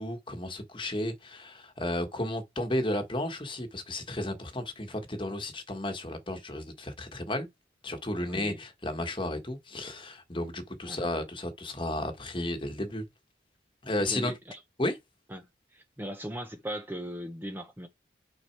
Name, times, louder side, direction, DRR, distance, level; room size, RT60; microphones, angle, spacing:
voice 1, 0.0-7.5 7.8-13.0 13.8-14.3 14.8-15.0, left 1 dB, 25° left, 1.4 m, -33 dB
voice 2, 8.2-8.6 10.8-11.0 14.0-14.6 15.3-17.9, equal, 10° right, 0.8 m, -39 dB
6.1 x 5.8 x 4.6 m
head